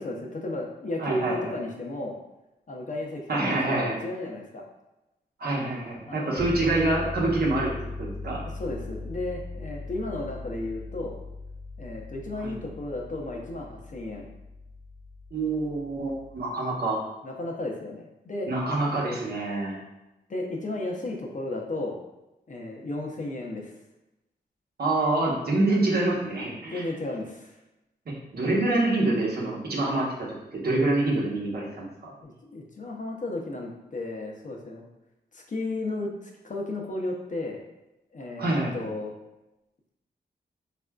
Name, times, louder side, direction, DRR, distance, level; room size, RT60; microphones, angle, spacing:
voice 1, 0.0-2.2 2.7-4.6 6.1-6.5 8.5-11.1 11.8-14.3 17.2-18.5 20.3-22.0 22.5-23.7 26.7-27.6 32.2-34.8 35.3-37.6 38.1-39.1, left 2 dB, 45° left, 0 dB, 0.6 m, -34 dB
voice 2, 1.0-1.5 3.3-4.0 5.4-7.7 8.0-8.4 12.4-12.6 15.3-17.0 18.5-19.8 24.8-26.8 28.3-32.1 38.4-38.8, right 2 dB, 60° right, -4 dB, 0.9 m, -26 dB
sound 1, 6.4-16.5, left 2 dB, 25° right, 0.4 m, -39 dB
3.4 x 2.4 x 2.2 m, 0.96 s
cardioid pair, 55°, 18 cm